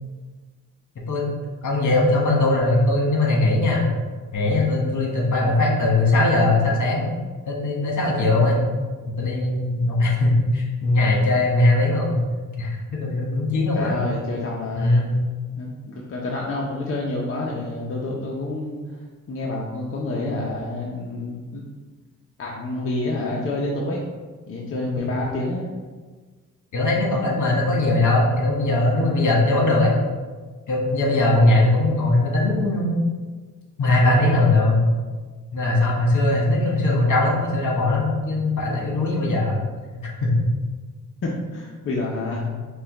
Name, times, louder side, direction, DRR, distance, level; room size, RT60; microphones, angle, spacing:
voice 1, 0.9-1.3 1.6-3.8 4.3-7.1 7.4-8.6 9.1-12.2 12.6-14.0 14.8-15.2 26.7-30.0 30.7-33.0 33.8-34.9 35.5-39.6 40.2-40.3, left 2 dB, 60° left, -2 dB, 1.4 m, -20 dB
voice 2, 13.7-14.9 15.5-18.8 19.3-21.6 22.4-24.1 24.5-25.7 41.2-42.5, left 2 dB, 40° left, -3 dB, 0.7 m, -28 dB
5.4 x 2.3 x 3.9 m, 1.4 s
cardioid pair, 90°, 33 cm